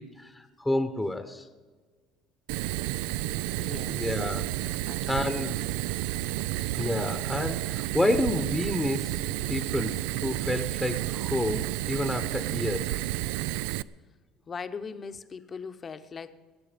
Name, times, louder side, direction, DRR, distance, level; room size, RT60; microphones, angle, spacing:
voice 1, 0.0-1.4 3.9-4.5 5.1-5.6 6.7-9.2 9.5-13.0, left 1 dB, 5° left, 8 dB, 0.9 m, -29 dB
Fire, 2.5-13.8, right 16 dB, 90° right, 0.3 m, -31 dB
voice 2, 3.6-4.1 4.8-5.0 5.3-5.4 14.5-16.3, left 5 dB, 30° left, 10 dB, 0.9 m, -39 dB
21.0 x 9.6 x 5.2 m, 1.4 s
cardioid pair, 125°, 0 cm